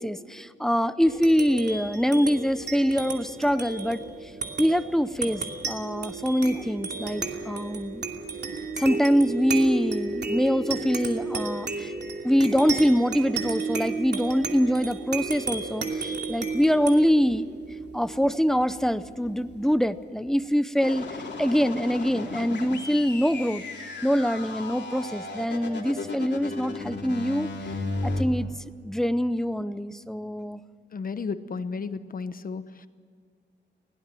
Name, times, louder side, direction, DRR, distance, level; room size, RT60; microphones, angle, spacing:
voice 1, 0.0-4.3 4.6-8.0 8.8-11.9 12.2-17.5 17.9-21.1 21.4-23.6 24.0-27.5 28.0-28.5 28.8-30.6, equal, ahead, 12 dB, 0.7 m, -24 dB
sound 1, 1.0-19.9, right 4 dB, 65° right, 2.6 m, -33 dB
sound 2, 20.8-28.2, left 3 dB, 65° left, 3.3 m, -35 dB
voice 2, 30.9-32.6, left 5 dB, 50° left, 12 dB, 1.0 m, -33 dB
21.0 x 17.5 x 7.6 m, 2.1 s
wide cardioid pair, 130°, 19 cm